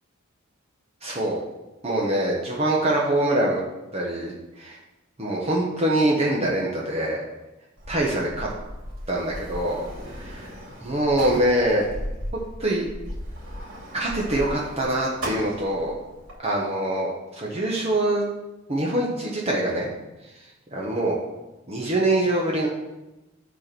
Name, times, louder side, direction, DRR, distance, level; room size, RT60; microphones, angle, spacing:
voice 1, 1.0-1.4 1.8-3.6 3.9-4.8 5.2-7.2 7.9-8.5 9.1-10.5 10.8-11.8 12.6-12.9 13.9-15.9 16.4-18.3 18.7-19.9 20.3-21.2 21.7-22.7, right 1 dB, 30° right, -3 dB, 1.1 m, -24 dB
Sliding door, 7.8-16.3, equal, 75° right, 3.0 m, -37 dB
9.7 x 4.2 x 6.1 m, 1.0 s
head